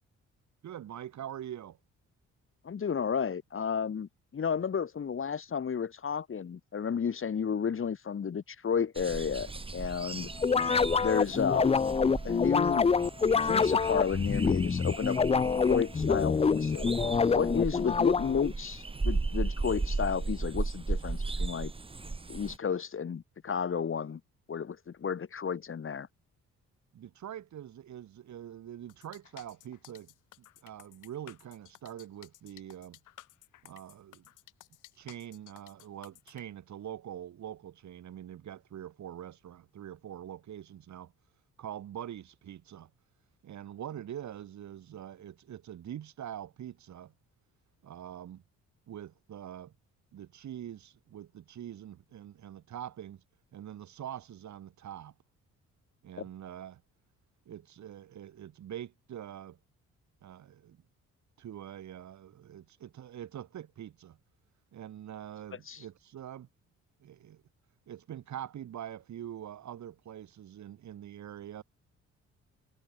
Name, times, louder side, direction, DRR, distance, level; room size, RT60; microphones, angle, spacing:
voice 1, 0.6-1.8 26.9-33.0 33.6-34.3 35.0-41.1 41.6-42.9 43.4-47.1 47.8-48.4 48.9-49.7 50.1-53.2 53.5-55.2 56.0-56.8 57.4-59.6 60.2-60.8 61.4-64.2 64.7-66.5 67.0-67.4 67.9-71.6, right 10 dB, 70° right, 6.7 m, -44 dB
voice 2, 2.6-10.3 11.0-11.8 12.2-12.9 13.4-15.2 15.7-16.9 17.3-21.7 22.3-24.2 24.5-26.1 65.7-65.8, left 7 dB, 45° left, 3.0 m, -32 dB
sound 1, 8.9-22.6, right 3 dB, 20° right, 1.4 m, -36 dB
sound 2, 10.4-18.5, left 5 dB, 20° left, 0.5 m, -26 dB
sound 3, 28.9-36.4, left 15 dB, 85° left, 6.8 m, -55 dB
cardioid pair, 90°, 30 cm